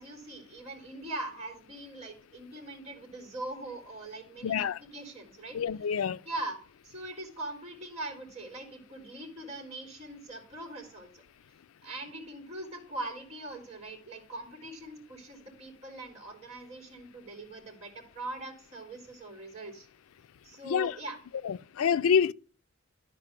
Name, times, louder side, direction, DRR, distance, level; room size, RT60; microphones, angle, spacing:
voice 1, 0.0-5.6 6.2-6.6 6.8-11.2 11.8-19.9 20.4-21.2, right 2 dB, 35° right, 3.4 m, -41 dB
voice 2, 4.4-4.8 5.5-6.2 20.6-20.9 21.4-22.3, left 7 dB, 80° left, 0.4 m, -27 dB
11.5 x 4.4 x 6.5 m
head